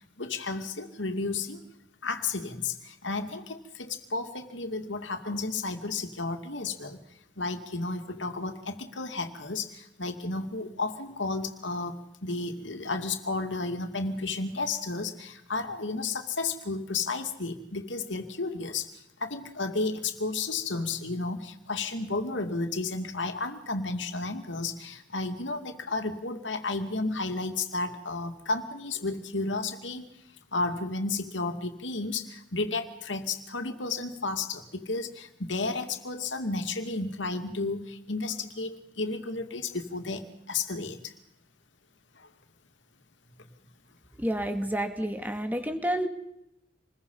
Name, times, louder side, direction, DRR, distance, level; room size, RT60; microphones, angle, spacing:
voice 1, 0.2-1.6 2.0-7.0 7.4-11.9 12.2-30.1 30.5-41.1 42.2-42.3, left 3 dB, 90° left, 7 dB, 2.5 m, -32 dB
voice 2, 44.2-46.1, right 1 dB, 10° right, 6 dB, 2.4 m, -29 dB
27.5 x 21.5 x 5.6 m, 0.81 s
head